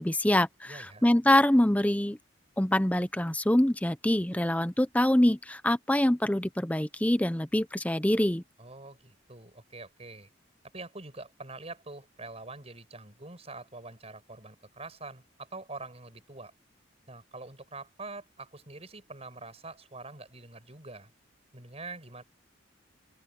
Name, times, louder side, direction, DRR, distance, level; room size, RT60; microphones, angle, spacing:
voice 1, 0.0-2.2 2.6-8.4, left 1 dB, 10° left, 0.7 m, -25 dB
voice 2, 0.7-1.0 8.6-10.3 10.7-16.5 17.1-21.1 21.5-22.2, right 3 dB, 30° right, 6.4 m, -45 dB
open air
head